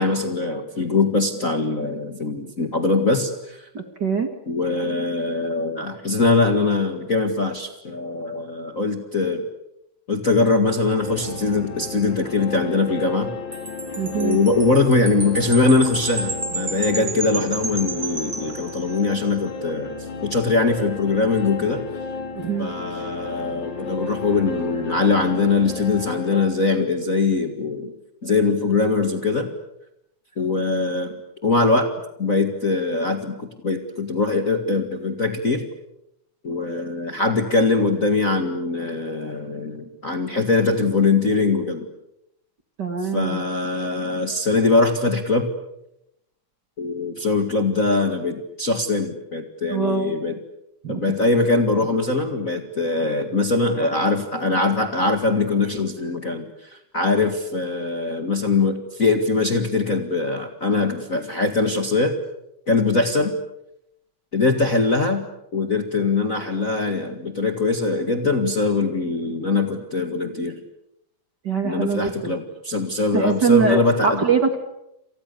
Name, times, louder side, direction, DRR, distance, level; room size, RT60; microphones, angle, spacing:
voice 1, 0.0-3.7 4.5-9.4 10.1-13.3 14.2-19.9 20.2-21.8 22.6-27.9 28.2-29.5 30.4-31.1 31.4-31.9 32.2-35.6 36.4-41.9 43.1-45.5 46.8-50.3 50.9-62.2 62.7-63.3 64.3-65.3 65.5-70.6 71.6-74.2, left 3 dB, 30° left, 6 dB, 1.9 m, -22 dB
voice 2, 3.7-4.3 14.0-14.4 16.9-17.1 22.3-22.7 42.8-43.4 49.7-50.2 50.8-51.0 71.4-72.3 73.1-74.6, right 5 dB, 35° right, 7 dB, 2.4 m, -23 dB
sound 1, 11.0-26.5, left 3 dB, 70° left, 4.3 m, -34 dB
Wind chime, 13.5-19.2, right 3 dB, 20° right, 2.0 m, -31 dB
29.0 x 28.0 x 6.9 m, 0.84 s
omnidirectional pair, 3.5 m